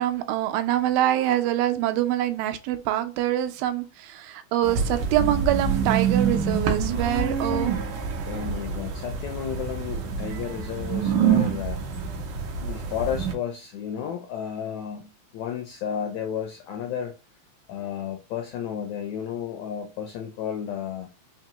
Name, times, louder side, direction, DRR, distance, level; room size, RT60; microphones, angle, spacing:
voice 1, 0.0-7.7, right 13 dB, 90° right, 2.4 m, -25 dB
sound 1, 4.6-13.3, right 6 dB, 70° right, 2.1 m, -26 dB
voice 2, 8.2-12.2 12.6-17.1 17.7-21.1, left 9 dB, 85° left, 1.6 m, -33 dB
5.7 x 2.3 x 2.8 m
omnidirectional pair, 4.0 m